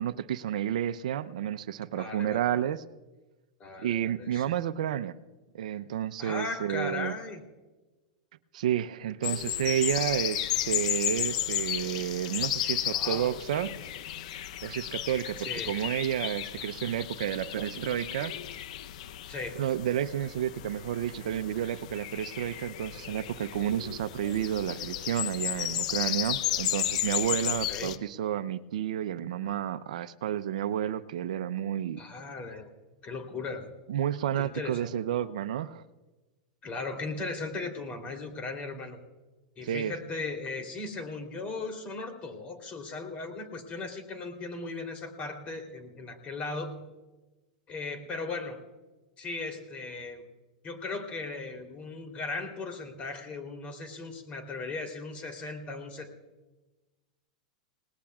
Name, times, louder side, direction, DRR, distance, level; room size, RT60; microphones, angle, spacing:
voice 1, 0.0-2.8 3.8-5.1 5.5-7.2 8.5-13.7 14.6-18.3 19.5-32.0 33.9-35.8 39.6-39.9, right 10 dB, 70° right, 13 dB, 0.7 m, -31 dB
voice 2, 1.9-2.4 3.6-4.4 6.2-7.4 12.9-13.4 15.4-15.7 19.3-19.6 27.5-27.9 32.0-32.7 33.0-33.7 34.4-34.9 36.6-39.0 39.6-46.8 47.7-48.6 49.2-50.3 50.6-56.1, left 3 dB, 30° left, 4 dB, 3.3 m, -37 dB
sound 1, 9.2-28.0, left 12 dB, 65° left, 0.8 m, -33 dB
29.5 x 19.0 x 2.4 m, 1.2 s
hypercardioid pair, 105°, 4 cm